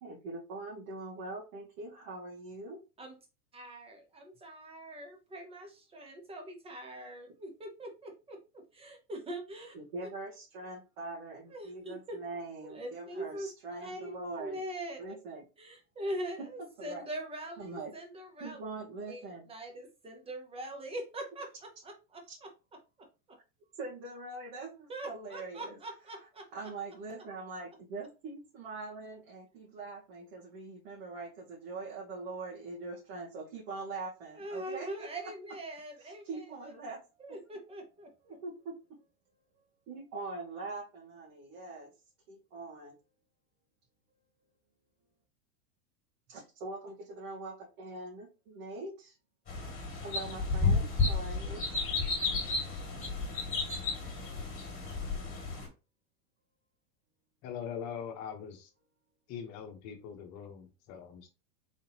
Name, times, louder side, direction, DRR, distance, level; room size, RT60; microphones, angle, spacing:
voice 1, 0.0-2.8 9.7-14.6 15.0-15.4 16.8-17.0 17.6-17.9 18.4-19.5 23.8-25.8 26.2-35.1 36.0-37.0 38.4-38.7 39.9-41.9 42.3-43.0 46.3-49.2 50.0-51.7, right 3 dB, 60° right, 2.1 m, -43 dB
voice 2, 3.5-8.4 8.7-9.7 10.0-10.1 11.5-12.2 12.6-15.0 15.6-18.6 19.1-22.5 24.9-26.5 34.3-36.7 37.2-38.4, right 1 dB, 10° right, 1.0 m, -42 dB
sound 1, 49.5-55.7, left 4 dB, 15° left, 2.2 m, -32 dB
voice 3, 57.4-58.7 59.3-61.3, left 7 dB, 35° left, 1.2 m, -42 dB
4.1 x 3.7 x 2.9 m
supercardioid pair, 145°, 48 cm